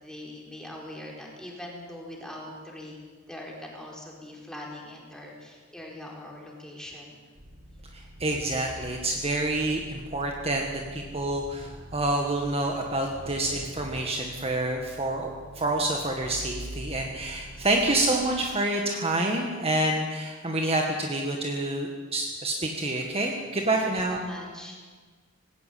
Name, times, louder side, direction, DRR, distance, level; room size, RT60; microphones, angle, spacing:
voice 1, 0.0-7.2 23.7-24.8, left 1 dB, 5° left, -2 dB, 4.5 m, -42 dB
sound 1, 7.4-18.1, equal, 65° right, 5.8 m, -45 dB
voice 2, 7.9-24.2, right 2 dB, 30° right, 1 dB, 1.8 m, -28 dB
19.5 x 17.5 x 8.6 m, 1.5 s
head